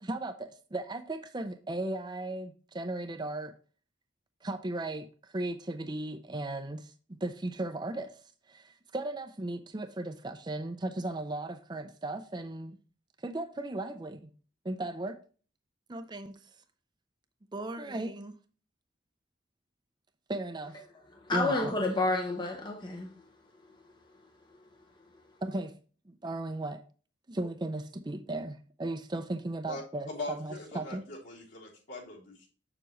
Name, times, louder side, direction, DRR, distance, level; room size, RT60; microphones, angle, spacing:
voice 1, 0.0-3.5 4.4-8.2 8.5-12.8 13.2-14.3 14.6-15.2 15.9-16.4 17.5-18.4 20.3-20.8 21.3-21.7 25.4-25.7 26.1-26.8 27.3-31.0, right 2 dB, 20° right, 0.5 m, -36 dB
voice 2, 21.1-23.2 23.7-23.9 24.5-24.6, left 2 dB, 25° left, 0.7 m, -31 dB
voice 3, 30.1-32.5, left 2 dB, 65° left, 3.3 m, -41 dB
7.3 x 6.9 x 3.1 m
head